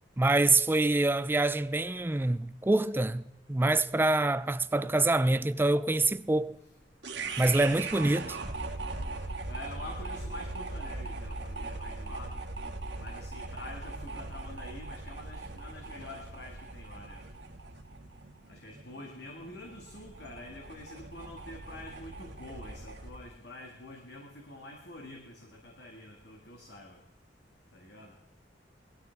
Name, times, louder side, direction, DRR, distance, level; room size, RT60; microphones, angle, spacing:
voice 1, 0.2-6.6 7.4-8.4, right 2 dB, 10° right, 0.4 m, -26 dB
sound 1, 7.0-23.2, right 3 dB, 80° right, 2.0 m, -40 dB
voice 2, 9.5-12.4 13.0-17.2 18.5-27.0 27.7-28.1, left 2 dB, 70° left, 2.0 m, -47 dB
19.5 x 13.0 x 3.5 m
head